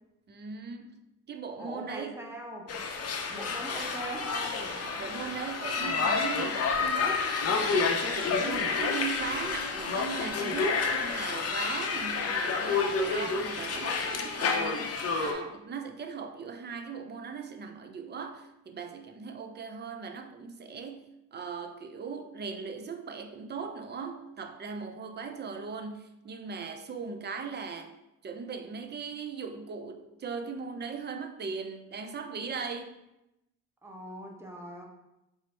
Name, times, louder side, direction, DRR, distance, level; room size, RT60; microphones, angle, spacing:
voice 1, 0.3-1.0 1.3-2.2 5.0-27.9 28.2-33.0, right 5 dB, 35° right, 0.5 m, -39 dB
voice 2, 1.6-2.8 3.3-4.8 33.8-34.8, right 1 dB, 10° right, 0.8 m, -41 dB
sound 1, 2.7-15.3, left 4 dB, 55° left, 0.7 m, -29 dB
4.5 x 2.0 x 4.3 m
cardioid pair, 90°, 30 cm